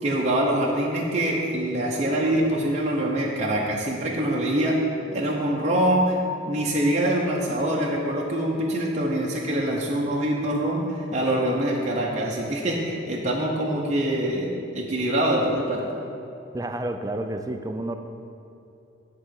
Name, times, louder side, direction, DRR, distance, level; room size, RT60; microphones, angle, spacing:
voice 1, 0.0-4.8 5.1-6.2 6.5-15.9, right 1 dB, 35° right, -3 dB, 0.8 m, -24 dB
voice 2, 16.5-18.0, right 1 dB, 20° right, 6 dB, 0.4 m, -30 dB
10.5 x 3.8 x 6.4 m, 2.8 s
head